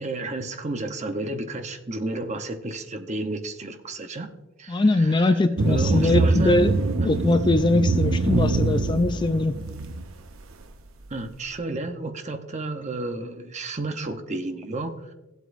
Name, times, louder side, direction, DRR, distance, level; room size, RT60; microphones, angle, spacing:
voice 1, 0.0-5.4 5.7-6.6 7.0-7.1 11.1-15.1, right 2 dB, 35° right, 6 dB, 0.8 m, -32 dB
voice 2, 4.7-6.7 7.0-9.5, left 2 dB, 20° left, 9 dB, 0.4 m, -21 dB
sound 1, 5.6-10.1, right 3 dB, 80° right, 0.7 m, -24 dB
17.0 x 8.1 x 2.6 m, 1.1 s
head